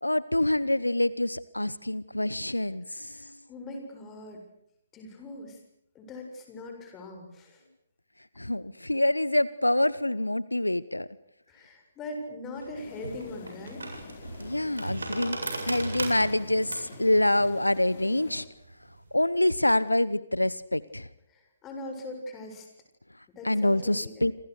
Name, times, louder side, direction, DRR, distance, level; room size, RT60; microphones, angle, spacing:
voice 1, 0.0-3.3 8.4-11.1 14.4-15.4 15.6-18.4 19.1-21.1 23.4-24.3, left 1 dB, 85° left, 18 dB, 1.0 m, -26 dB
voice 2, 2.9-4.4 4.9-5.6 5.9-7.6 11.5-13.8 21.3-22.7 23.3-24.3, left 2 dB, 15° left, 3 dB, 7.3 m, -41 dB
sound 1, 12.6-19.2, right 3 dB, 70° right, 8.0 m, -38 dB
sound 2, 12.7-18.5, left 8 dB, 40° left, 3.7 m, -48 dB
28.0 x 27.0 x 6.7 m, 0.74 s
figure-of-eight pair, 135°, 0 cm